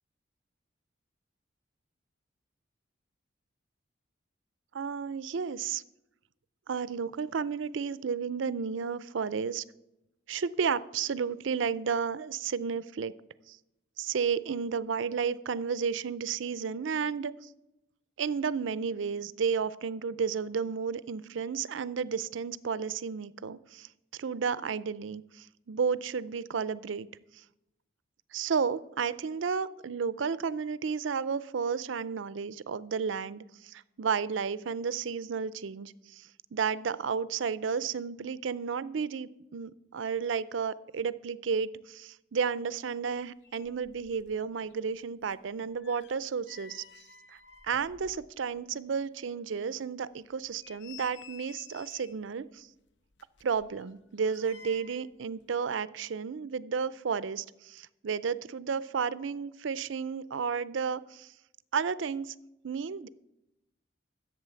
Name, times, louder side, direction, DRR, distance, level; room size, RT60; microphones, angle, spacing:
voice 1, 4.7-5.8 6.7-9.6 10.3-13.1 13.5-13.6 14.0-17.5 18.2-23.9 24.2-27.1 27.3-27.4 28.3-46.8 47.3-47.4 47.6-52.7 53.4-61.3 61.7-62.3 62.6-63.1, right 6 dB, 80° right, 17 dB, 0.5 m, -32 dB
sound 1, 43.2-43.3 43.4-44.4 44.7-48.7 49.0-49.1 49.6-49.7 50.3-52.3 53.1-55.1 55.4-55.5, left 6 dB, 70° left, 0.7 m, -53 dB
11.5 x 8.0 x 6.9 m, 0.91 s
head